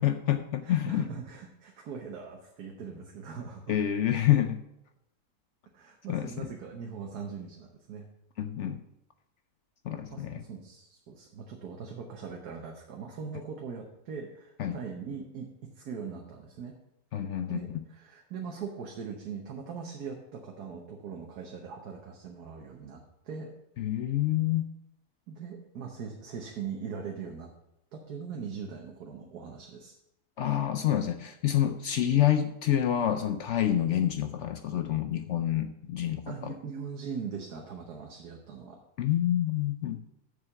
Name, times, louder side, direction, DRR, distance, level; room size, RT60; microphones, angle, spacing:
voice 1, 0.0-1.1 3.7-4.6 6.1-6.5 8.4-8.8 9.8-10.4 14.6-14.8 17.1-17.6 23.8-24.7 30.4-36.5 39.0-40.0, left 11 dB, 65° left, 8 dB, 0.7 m, -27 dB
voice 2, 0.6-3.8 5.7-8.1 9.9-15.5 15.8-16.7 17.5-23.5 25.3-27.5 27.9-29.9 36.3-38.8, right 6 dB, 85° right, 1 dB, 1.5 m, -41 dB
7.1 x 6.9 x 5.8 m, 0.84 s
omnidirectional pair, 1.6 m